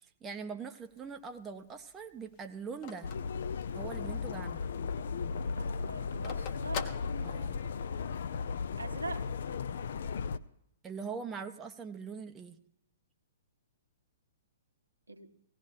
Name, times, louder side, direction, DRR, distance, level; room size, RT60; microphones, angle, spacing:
voice 1, 0.2-3.1 3.7-4.8 7.2-7.6 10.8-12.6, right 5 dB, 15° right, 6 dB, 0.6 m, -42 dB
Telephone, 0.8-4.2 4.6-4.7 4.9-7.8, left 6 dB, 35° left, 1.0 m, -44 dB
sound 1, 3.0-10.4, left 5 dB, 55° left, 0.5 m, -36 dB
voice 2, 5.6-6.9 8.8-9.3 15.1-15.4, right 2 dB, 85° right, 3 dB, 1.1 m, -42 dB
18.0 x 16.5 x 2.6 m, 0.78 s
figure-of-eight pair, 115°, 0 cm